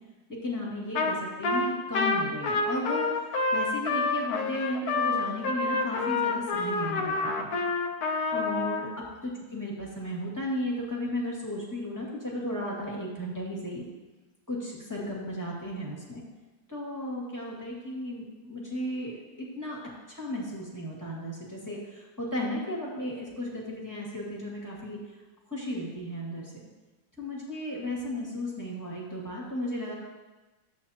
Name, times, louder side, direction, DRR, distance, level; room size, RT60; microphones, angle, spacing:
voice 1, 0.3-7.5 8.3-13.8 14.5-16.2 16.7-19.8 20.1-25.0 25.5-26.5 27.2-29.9, left 1 dB, 10° left, -5 dB, 2.0 m, -35 dB
Trumpet, 1.0-1.2 1.4-8.8, left 3 dB, 60° left, 1.2 m, -28 dB
12.5 x 8.5 x 2.9 m, 1.2 s
omnidirectional pair, 2.0 m